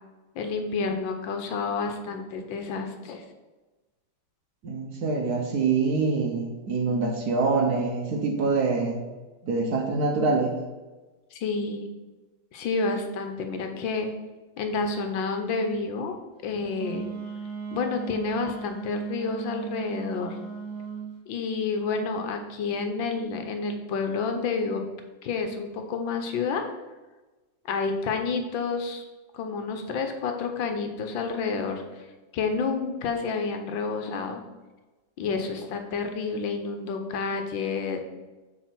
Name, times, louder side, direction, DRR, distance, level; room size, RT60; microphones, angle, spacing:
voice 1, 0.3-3.2 11.3-11.9 12.5-14.1 14.6-16.2 16.4-17.1 17.7-20.3 21.3-24.8 25.2-26.7 27.6-29.0 29.3-32.1 32.3-34.4 35.2-38.0, left 4 dB, 75° left, 5 dB, 1.5 m, -29 dB
voice 2, 4.6-9.0 9.4-10.5, right 4 dB, 60° right, 2 dB, 1.3 m, -25 dB
Wind instrument woodwind instrument, 16.7-21.1, right 5 dB, 35° right, 1.5 m, -36 dB
7.2 x 3.9 x 5.9 m, 1.2 s
omnidirectional pair, 2.2 m